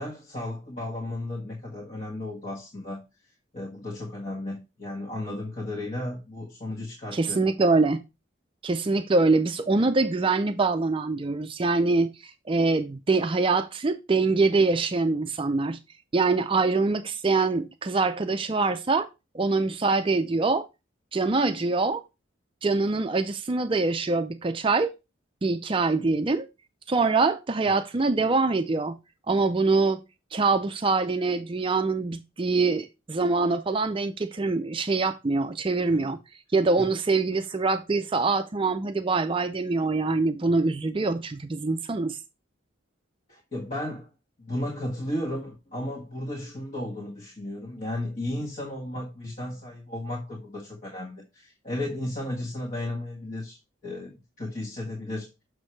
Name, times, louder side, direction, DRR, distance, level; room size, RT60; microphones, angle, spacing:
voice 1, 0.0-3.0 3.5-7.4 27.7-27.8 35.9-36.1 36.8-36.9 43.3-44.1 44.4-53.6 53.8-55.3, left 1 dB, 40° left, 1.6 m, -34 dB
voice 2, 7.1-8.0 8.6-15.8 16.1-19.1 19.3-20.7 21.1-22.0 22.6-24.9 25.4-26.5 26.9-29.0 29.3-30.0 30.3-36.2 36.5-42.2, right 3 dB, 25° right, 0.4 m, -24 dB
6.5 x 6.2 x 3.2 m
head